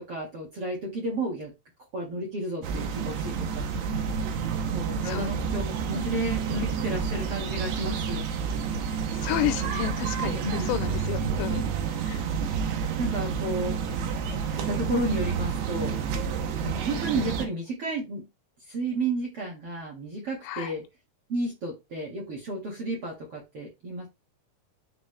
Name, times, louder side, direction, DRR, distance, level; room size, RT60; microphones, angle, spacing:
voice 1, 0.0-1.5 1.9-3.9 4.7-8.7 10.4-10.7 11.0-11.3 12.5-12.6 13.0-13.8 14.5-16.0 16.6-18.2 18.7-20.8 21.3-24.1, right 2 dB, 45° right, 2.1 m, -32 dB
sound 1, 2.6-17.5, right 6 dB, 75° right, 2.9 m, -29 dB
voice 2, 9.2-11.7 12.1-12.2 20.5-20.7, left 15 dB, 85° left, 2.8 m, -31 dB
10.0 x 3.8 x 3.3 m
omnidirectional pair, 5.0 m